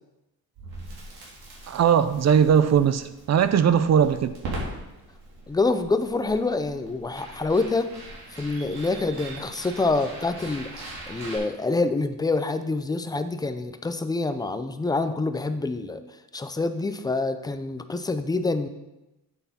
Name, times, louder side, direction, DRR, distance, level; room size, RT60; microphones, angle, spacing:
Crackle, 0.6-11.4, right 1 dB, 75° right, 3.7 m, -41 dB
voice 1, 1.7-4.4, right 8 dB, 45° right, 0.5 m, -20 dB
voice 2, 5.5-7.9 8.3-16.0 16.3-18.7, left 3 dB, 10° left, 0.4 m, -26 dB
8.9 x 8.2 x 4.3 m
cardioid pair, 155°, 38 cm